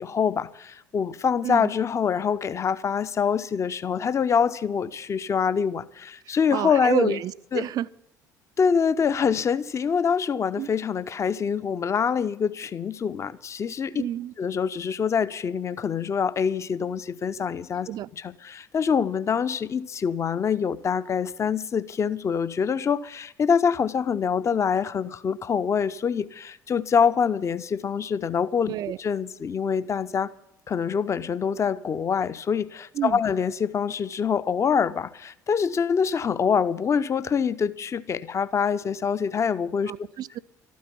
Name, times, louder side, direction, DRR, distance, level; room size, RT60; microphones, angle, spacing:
voice 1, 0.0-7.2 7.5-7.6 8.6-14.0 14.4-17.9 18.2-28.7 29.0-30.3 30.7-40.1, left 6 dB, 30° left, 0.7 m, -25 dB
voice 2, 6.5-7.9 10.6-10.7 13.9-14.3 17.9-18.1 28.7-29.0 32.9-33.2 39.9-40.4, right 12 dB, 45° right, 0.5 m, -29 dB
13.0 x 9.4 x 9.6 m
figure-of-eight pair, 55°, 9 cm